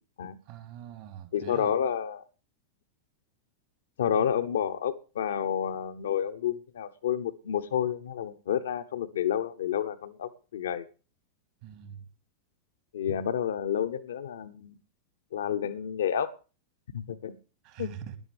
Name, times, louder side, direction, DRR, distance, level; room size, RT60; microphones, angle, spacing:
voice 1, 0.5-1.7 11.6-12.1 17.6-18.2, right 9 dB, 50° right, 2.1 m, -43 dB
voice 2, 1.3-2.2 4.0-10.9 12.9-14.7 15.3-16.3 16.9-17.4 17.8-17.9, left 9 dB, 65° left, 0.9 m, -30 dB
19.0 x 11.0 x 3.4 m
figure-of-eight pair, 90°, 0 cm